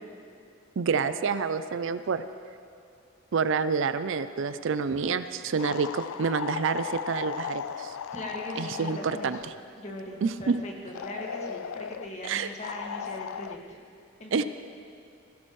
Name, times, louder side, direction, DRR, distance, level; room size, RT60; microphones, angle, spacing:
voice 1, 0.8-2.2 3.3-7.9 8.6-9.4 10.2-10.5 12.3-12.5 14.3-14.4, right 5 dB, 60° right, 12 dB, 0.4 m, -28 dB
sound 1, 5.6-9.6 10.9-12.1 12.6-13.6, left 8 dB, 75° left, 0.3 m, -36 dB
voice 2, 8.1-9.4 9.8-13.8 14.2-14.4, equal, 35° left, -1 dB, 1.8 m, -40 dB
17.0 x 16.5 x 3.1 m, 2.6 s
head